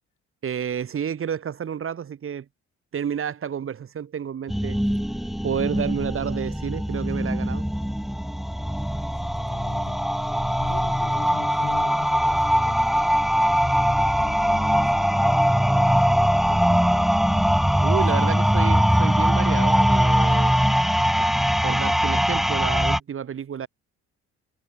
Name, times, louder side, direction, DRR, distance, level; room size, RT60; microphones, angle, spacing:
voice 1, 0.4-2.5 2.9-4.8 5.4-7.7 17.8-20.6 21.2-21.3 21.6-23.7, right 8 dB, 45° right, 1.3 m, -30 dB
sound 1, 4.5-23.0, equal, ahead, 0.7 m, -21 dB
voice 2, 8.7-15.7 16.5-17.3, left 13 dB, 80° left, 4.6 m, -45 dB
cardioid pair, 90°, 30 cm